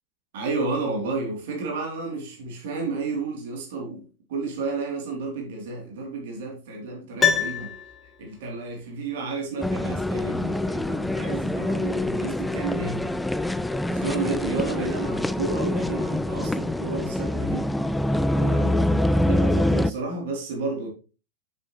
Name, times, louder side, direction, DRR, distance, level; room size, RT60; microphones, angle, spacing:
voice 1, 0.3-7.7 8.0-13.2 13.9-17.7 18.3-20.9, right 3 dB, 55° right, 3.0 m, -32 dB
Piano, 7.2-8.5 8.7-8.8, left 7 dB, 20° left, 1.7 m, -25 dB
sound 1, 9.6-19.9, left 1 dB, 5° left, 0.3 m, -25 dB
10.0 x 7.1 x 3.1 m
figure-of-eight pair, 90°, 0 cm